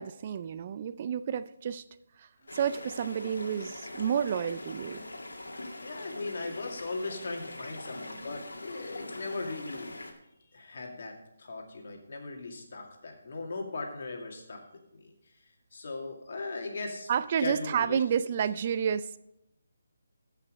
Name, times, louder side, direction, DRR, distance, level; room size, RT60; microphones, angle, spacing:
voice 1, 0.0-1.8 2.2-2.3 2.5-5.0 17.1-19.2, right 8 dB, 35° right, 14 dB, 0.4 m, -30 dB
sound 1, 2.5-10.1, left 2 dB, 80° left, 2.0 m, -43 dB
voice 2, 5.8-10.0 10.5-14.6 14.9-15.1 15.7-17.1 17.4-18.0, left 3 dB, 55° left, 2 dB, 2.3 m, -38 dB
14.0 x 5.8 x 5.3 m, 0.84 s
figure-of-eight pair, 155°, 0 cm